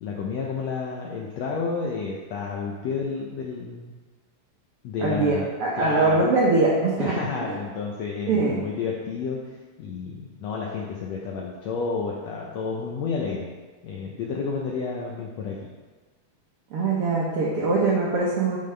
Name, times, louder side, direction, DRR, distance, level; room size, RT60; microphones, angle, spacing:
voice 1, 0.0-3.9 4.8-5.5 5.7-6.3 7.0-13.5 13.8-15.7, left 5 dB, 85° left, -2 dB, 1.5 m, -30 dB
voice 2, 5.0-7.1 7.5-7.6 8.3-8.6 16.7-18.6, right 3 dB, 90° right, -4 dB, 1.2 m, -22 dB
10.5 x 3.8 x 3.3 m, 1.3 s
omnidirectional pair, 3.8 m